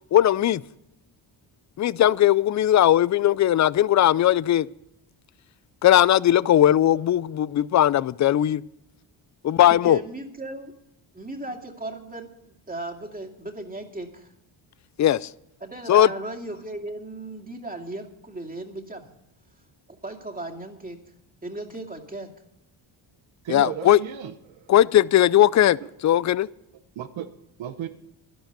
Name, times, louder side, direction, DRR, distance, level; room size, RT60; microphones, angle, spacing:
voice 1, 0.1-0.6 1.8-4.7 5.8-8.6 9.4-10.0 15.0-15.3 15.9-16.1 23.5-24.0 24.7-25.8 26.0-26.5, left 12 dB, 40° left, 0.4 m, -18 dB
voice 2, 9.7-10.7 11.1-12.3 12.7-14.3 15.6-19.1 19.9-21.0 21.4-22.3, right 2 dB, 20° right, 2.4 m, -36 dB
voice 3, 23.4-24.7 27.0-27.3 27.6-27.9, right 10 dB, 75° right, 1.0 m, -34 dB
11.5 x 11.5 x 6.8 m
cardioid pair, 75°, 47 cm